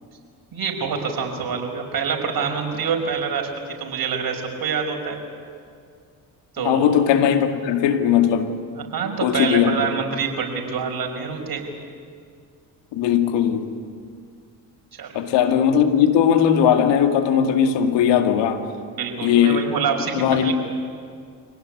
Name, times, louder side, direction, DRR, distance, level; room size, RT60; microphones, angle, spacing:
voice 1, 0.5-3.5 3.8-5.2 6.5-6.9 8.8-11.6 14.9-15.2 15.5-15.7 18.9-20.5, right 6 dB, 50° right, 2 dB, 5.6 m, -26 dB
voice 2, 6.6-8.6 9.2-9.9 12.9-13.7 15.1-18.6 19.2-19.6 20.1-20.5, left 9 dB, 70° left, 5 dB, 2.2 m, -18 dB
25.5 x 18.0 x 9.9 m, 2.2 s
hypercardioid pair, 55°, 45 cm